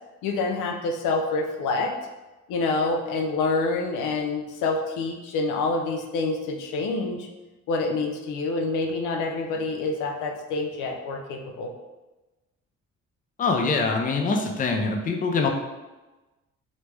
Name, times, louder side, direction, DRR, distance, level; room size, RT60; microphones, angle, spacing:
voice 1, 0.2-2.0 2.5-7.3 7.7-11.7, left 3 dB, 90° left, 2 dB, 0.5 m, -27 dB
voice 2, 13.4-15.5, left 4 dB, 30° left, 3 dB, 0.4 m, -24 dB
3.0 x 2.0 x 3.3 m, 1.1 s
cardioid pair, 90°, 30 cm